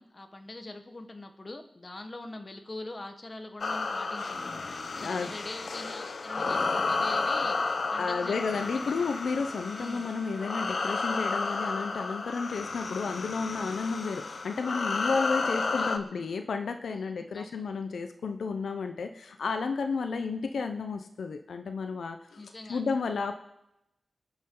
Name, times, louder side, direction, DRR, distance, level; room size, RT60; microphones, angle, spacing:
voice 1, 0.0-9.0 9.7-10.1 15.5-16.1 17.3-17.6 22.4-22.8, left 2 dB, 35° left, 6 dB, 1.5 m, -43 dB
sound 1, 3.6-16.0, left 3 dB, 60° left, 0.9 m, -32 dB
voice 2, 5.0-5.3 8.0-23.3, left 5 dB, 90° left, 6 dB, 0.8 m, -32 dB
Bowed string instrument, 9.3-12.8, equal, 5° left, 3.1 m, -48 dB
24.0 x 9.9 x 3.9 m, 0.88 s
wide cardioid pair, 80°, 0 cm